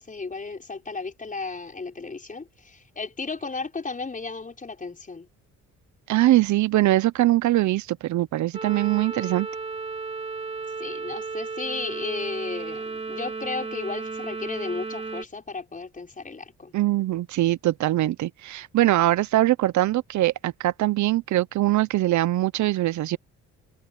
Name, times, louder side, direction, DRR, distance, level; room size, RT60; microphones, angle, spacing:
voice 1, 0.0-5.3 10.8-16.7, left 4 dB, 25° left, 5.3 m, -34 dB
voice 2, 6.1-9.5 16.7-23.2, right 15 dB, 70° right, 0.7 m, -22 dB
sound 1, 8.5-15.3, right 4 dB, 20° right, 2.7 m, -34 dB
cardioid pair, 90°, 30 cm